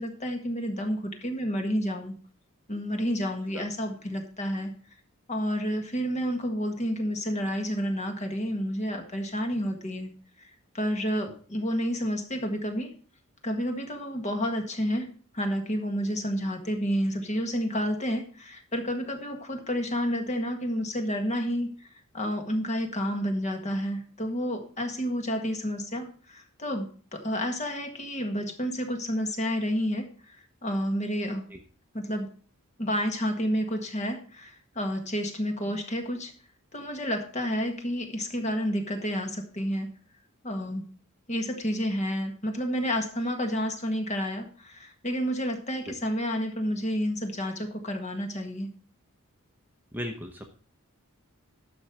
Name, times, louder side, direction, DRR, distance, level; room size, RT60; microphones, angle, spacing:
voice 1, 0.0-2.1 2.7-4.7 5.3-10.1 10.7-12.9 13.4-15.1 15.3-21.7 22.1-30.4 30.6-31.5 31.9-32.3 32.8-36.3 36.7-39.9 40.4-40.9 41.3-48.7, equal, 30° left, 4 dB, 1.7 m, -30 dB
voice 2, 49.9-50.4, equal, 10° right, 3 dB, 0.9 m, -36 dB
11.0 x 6.3 x 4.6 m, 0.42 s
head